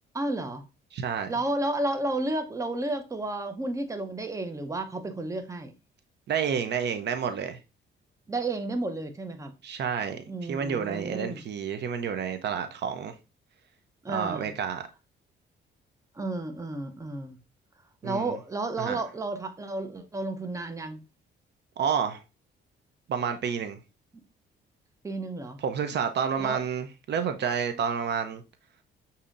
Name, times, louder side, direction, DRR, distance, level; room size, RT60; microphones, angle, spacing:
voice 1, 0.1-0.6 1.3-5.7 8.3-9.5 10.3-11.4 14.0-14.5 16.1-17.4 18.0-21.0 25.0-25.6 26.4-26.6, right 2 dB, 15° right, 0.7 m, -32 dB
voice 2, 0.9-1.3 6.3-7.6 9.6-13.1 14.1-14.8 18.0-18.3 18.8-19.0 21.8-22.2 23.1-23.8 25.6-28.4, right 7 dB, 60° right, 0.6 m, -29 dB
6.7 x 2.8 x 2.5 m
cardioid pair, 90°, 20 cm